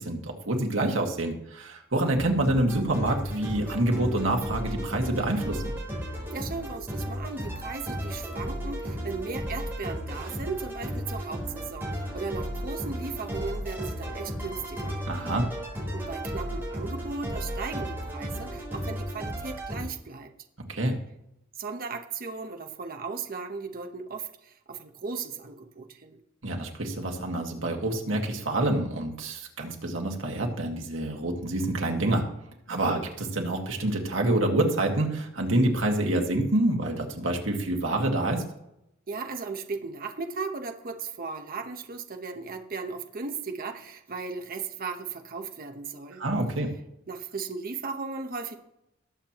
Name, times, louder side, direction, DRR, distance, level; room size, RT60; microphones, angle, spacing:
voice 1, 0.0-5.6 15.1-15.5 20.7-21.0 26.4-32.3 32.7-38.4 46.2-46.7, right 1 dB, 80° right, 2 dB, 1.9 m, -27 dB
sound 1, 2.1-19.8, equal, 10° right, 4.3 m, -34 dB
voice 2, 6.3-15.0 15.9-20.3 21.6-26.2 32.9-33.1 39.1-46.2 47.1-48.6, right 4 dB, 45° right, 5 dB, 0.9 m, -36 dB
19.5 x 7.4 x 3.0 m, 0.83 s
head